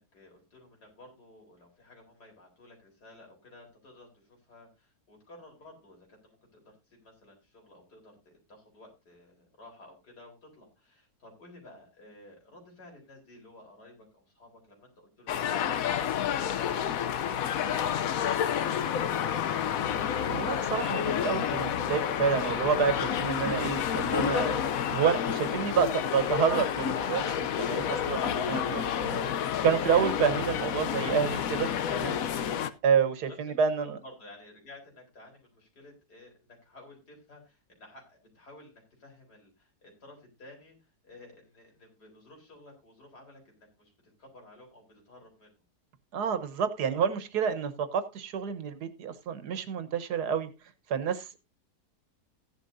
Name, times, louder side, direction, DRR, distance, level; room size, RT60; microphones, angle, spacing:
voice 1, 0.0-15.5 33.0-33.1 33.8-45.6, left 2 dB, 85° left, 1 dB, 4.6 m, -54 dB
sound 1, 15.3-32.7, left 9 dB, 65° left, 1.1 m, -29 dB
voice 2, 20.3-24.6 24.9-29.3 29.6-32.2 32.8-34.0 46.1-50.5 50.9-51.4, right 7 dB, 85° right, 12 dB, 1.7 m, -29 dB
15.0 x 10.5 x 2.6 m, 0.26 s
omnidirectional pair, 1.7 m